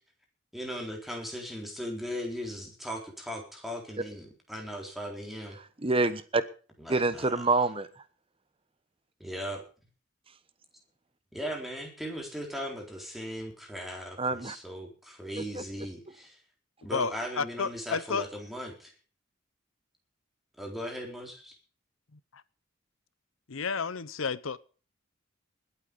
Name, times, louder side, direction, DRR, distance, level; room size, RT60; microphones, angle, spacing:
voice 1, 0.5-5.6 6.9-7.0 9.2-9.6 11.3-14.2 14.4-16.3 16.8-18.7 20.6-21.5, equal, ahead, 4.0 m, -38 dB
voice 2, 5.5-6.4 6.9-8.0 14.2-14.6 15.4-15.6, right 3 dB, 25° right, 1.1 m, -27 dB
voice 3, 16.9-18.3 22.1-22.4 23.5-24.6, left 5 dB, 80° left, 0.9 m, -32 dB
21.0 x 8.5 x 5.3 m
head